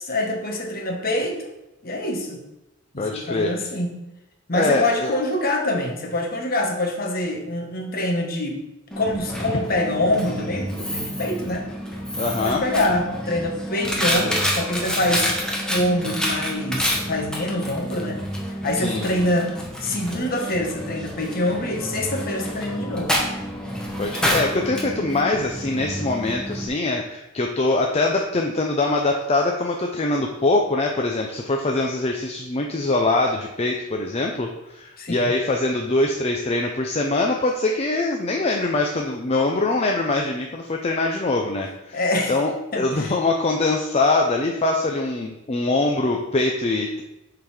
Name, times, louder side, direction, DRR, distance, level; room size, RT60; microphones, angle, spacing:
voice 1, 0.0-1.4 1.8-2.4 2.9-4.0 4.5-8.6 9.0-11.7 12.4-15.3 15.7-18.2 18.6-23.2 35.0-35.3 41.9-42.4 42.7-43.2, left 1 dB, 45° left, 2 dB, 1.3 m, -25 dB
voice 2, 3.0-3.5 4.5-5.1 12.2-12.6 18.8-19.3 24.0-42.0 42.3-47.0, left 2 dB, 30° left, 1 dB, 0.5 m, -23 dB
Coin (dropping), 8.9-26.7, equal, 5° left, 1.1 m, -28 dB
7.1 x 4.0 x 4.9 m, 0.95 s
head